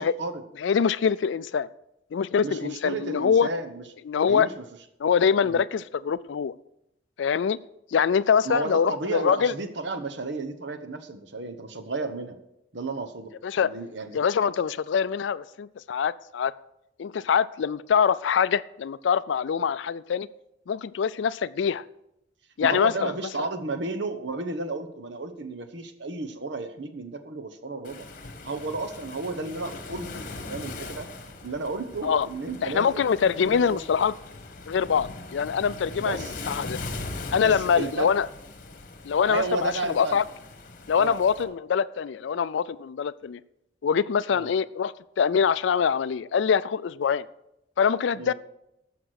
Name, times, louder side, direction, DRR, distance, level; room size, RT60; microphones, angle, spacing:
voice 1, 0.0-0.4 2.4-3.8 4.2-4.6 5.4-5.6 8.4-12.4 12.7-13.3 13.6-14.2 22.6-28.1 28.4-31.1 31.4-33.8 36.0-36.4 37.4-38.1 39.2-40.2 40.9-41.5 44.3-44.5 48.2-48.3, right 3 dB, 65° right, 8 dB, 1.1 m, -33 dB
voice 2, 0.6-1.7 2.1-3.5 4.1-4.5 5.0-6.5 7.2-7.6 7.9-9.5 13.4-13.7 14.1-16.5 17.0-20.3 20.7-21.8 22.6-23.1 32.0-32.3 32.6-34.1 34.7-36.8 37.3-38.3 39.1-40.2 40.9-43.4 43.8-47.2 47.8-48.3, left 7 dB, 70° left, 15 dB, 0.4 m, -24 dB
Waves surf, 27.8-41.4, left 3 dB, 45° left, 1.3 m, -40 dB
14.0 x 5.9 x 6.4 m, 0.83 s
head